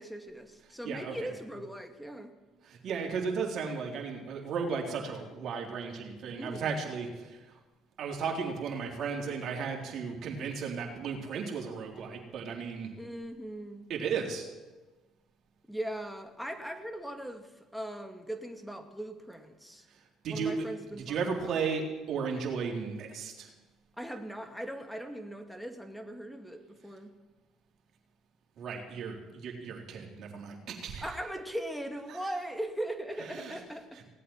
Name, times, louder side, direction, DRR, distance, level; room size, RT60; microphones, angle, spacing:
voice 1, 0.0-2.3 6.4-6.7 13.0-13.9 15.7-19.8 20.3-21.6 24.0-27.1 31.0-34.0, right 1 dB, ahead, 7 dB, 2.3 m, -39 dB
voice 2, 0.8-1.2 2.6-7.6 8.0-12.9 13.9-14.5 19.9-20.5 20.9-23.5 28.6-31.0 33.2-33.6 33.9-34.0, right 5 dB, 60° right, 1 dB, 3.7 m, -35 dB
18.0 x 8.5 x 9.1 m, 1.2 s
hypercardioid pair, 65°, 0 cm